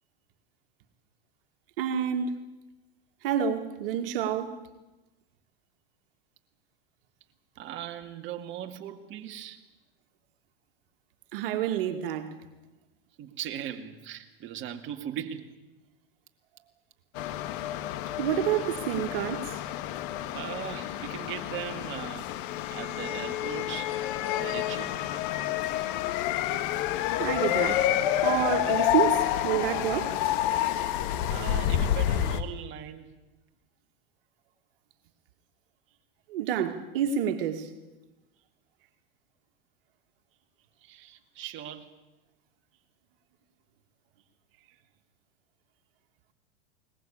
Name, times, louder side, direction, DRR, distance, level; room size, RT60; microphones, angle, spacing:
voice 1, 1.8-2.3 3.2-4.6 11.3-12.4 18.2-19.6 27.2-27.9 28.2-30.2 36.3-37.7, right 9 dB, 65° right, 2.3 m, -28 dB
voice 2, 7.6-9.6 13.2-15.5 20.3-22.3 22.7-25.0 31.3-33.1 40.8-41.9, right 10 dB, 40° right, 2.2 m, -39 dB
sound 1, 17.1-32.4, left 12 dB, 60° left, 1.8 m, -29 dB
21.5 x 20.0 x 8.7 m
hypercardioid pair, 105°, 29 cm